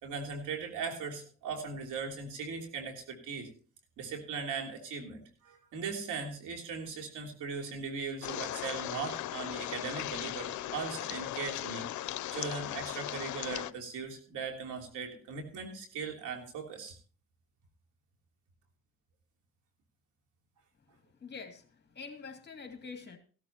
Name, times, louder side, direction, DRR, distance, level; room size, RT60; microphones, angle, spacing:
voice 1, 0.0-3.5 4.0-16.9, right 5 dB, 90° right, 2 dB, 3.2 m, -39 dB
sound 1, 8.2-13.7, left 14 dB, 75° left, 0.6 m, -38 dB
voice 2, 21.2-23.2, left 5 dB, 35° left, 4 dB, 2.6 m, -45 dB
16.5 x 13.0 x 2.9 m, 0.41 s
cardioid pair, 90°, 30 cm